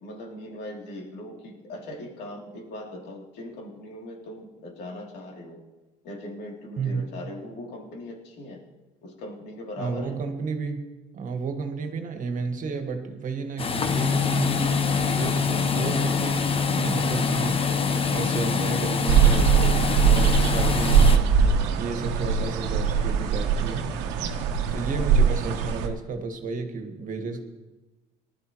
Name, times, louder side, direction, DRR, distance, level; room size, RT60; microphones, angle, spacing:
voice 1, 0.0-5.6 6.0-8.6 9.0-10.2, left 1 dB, 75° left, -1 dB, 3.1 m, -39 dB
voice 2, 6.8-7.1 9.8-10.9 11.1-17.7 18.1-23.9 24.7-27.5, right 4 dB, 50° right, 6 dB, 1.7 m, -32 dB
sound 1, 13.6-21.2, left 5 dB, 30° left, 1.0 m, -25 dB
sound 2, 19.1-25.9, right 6 dB, 85° right, 1.2 m, -21 dB
19.5 x 12.5 x 3.1 m, 1.1 s
cardioid pair, 100°, 18 cm